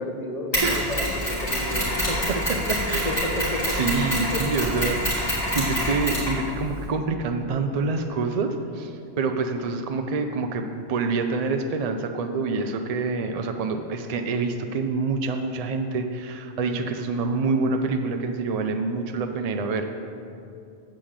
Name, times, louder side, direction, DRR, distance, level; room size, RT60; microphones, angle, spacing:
voice 1, 0.0-2.6 3.0-3.7 4.3-4.5, left 1 dB, 40° left, 1 dB, 1.0 m, -31 dB
Mechanisms, 0.5-6.9, equal, 25° left, 2.5 m, -26 dB
voice 2, 0.6-1.0 2.3-2.4 2.7-3.2 3.8-19.9, right 4 dB, 55° right, 5 dB, 0.4 m, -27 dB
7.7 x 5.0 x 7.2 m, 2.6 s
omnidirectional pair, 1.1 m